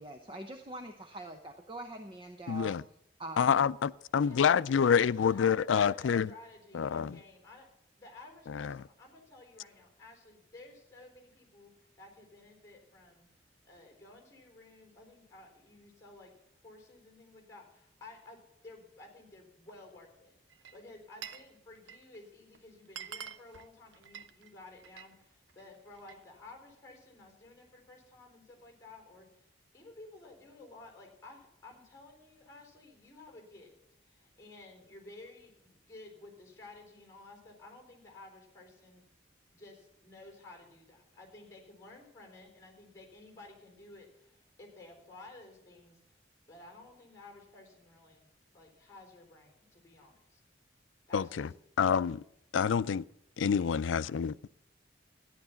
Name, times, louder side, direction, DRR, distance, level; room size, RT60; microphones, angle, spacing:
voice 1, 0.0-2.8 3.2-3.7, right 1 dB, 25° right, 0.7 m, -44 dB
voice 2, 2.5-2.8 3.4-6.3 6.7-7.2 8.5-8.8 51.1-51.5 51.8-52.2 52.5-53.0 53.4-54.3, left 7 dB, 90° left, 0.4 m, -27 dB
voice 3, 4.2-7.7 8.0-13.3 13.6-16.3 16.6-20.3 20.7-33.8 34.0-39.1 39.5-46.0 46.5-48.2 48.5-50.4 51.1-51.5, left 2 dB, 15° left, 3.8 m, -53 dB
Glass, 20.5-21.5 21.8-22.2 22.5-22.6 22.9-25.1 25.5-26.2, right 8 dB, 85° right, 0.7 m, -47 dB
13.5 x 10.0 x 5.7 m
head